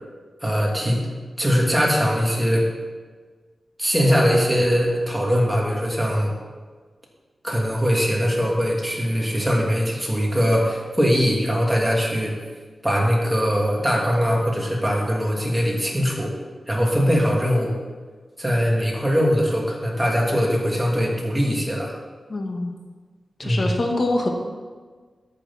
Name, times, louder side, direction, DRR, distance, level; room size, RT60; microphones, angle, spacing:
voice 1, 0.4-1.0 1.4-2.6 3.8-6.3 7.4-12.3 12.8-16.3 16.7-17.7 18.4-21.9 23.4-23.8, equal, 10° right, -3 dB, 3.0 m, -21 dB
voice 2, 22.3-22.7 23.4-24.3, left 2 dB, 45° left, 2 dB, 1.7 m, -24 dB
13.5 x 8.8 x 4.2 m, 1.4 s
wide cardioid pair, 75°, 0 cm